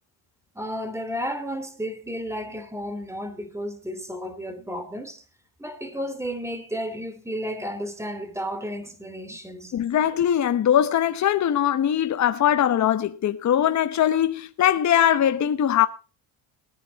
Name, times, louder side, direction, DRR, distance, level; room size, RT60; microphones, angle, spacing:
voice 1, 0.5-5.2 5.6-9.7, equal, 5° right, 2.7 m, -32 dB
voice 2, 9.7-15.9, left 10 dB, 40° left, 1.1 m, -21 dB
19.0 x 10.0 x 4.1 m
cardioid pair, 110°, 43 cm